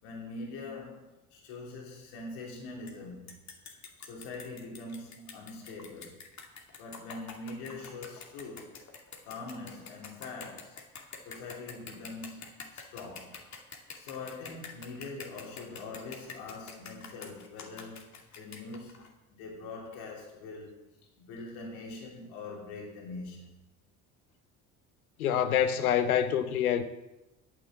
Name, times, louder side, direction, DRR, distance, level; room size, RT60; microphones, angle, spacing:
voice 1, 0.0-3.4 4.0-6.2 6.8-8.8 9.2-10.8 11.2-13.4 13.9-20.8 21.2-23.6, left 3 dB, 65° left, 3.1 m, -43 dB
sound 1, 2.9-3.0 3.3-19.1, left 5 dB, 40° left, 2.3 m, -47 dB
voice 2, 25.2-26.8, left 9 dB, 85° left, 1.0 m, -26 dB
9.0 x 8.2 x 7.8 m
hypercardioid pair, 60°, 42 cm